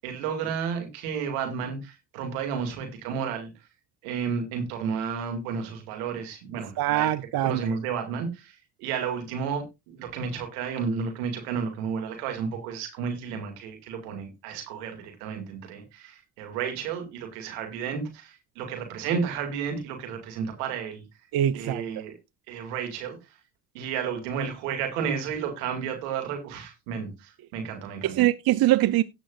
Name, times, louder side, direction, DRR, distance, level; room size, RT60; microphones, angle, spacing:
voice 1, 0.0-3.5 4.0-7.1 7.4-21.0 21.5-22.2 22.5-23.2 23.7-28.2, right 6 dB, 90° right, 2.4 m, -32 dB
voice 2, 6.8-7.6 21.3-21.8 28.0-29.0, right 14 dB, 55° right, 0.6 m, -23 dB
17.5 x 6.2 x 2.4 m
hypercardioid pair, 50°, 44 cm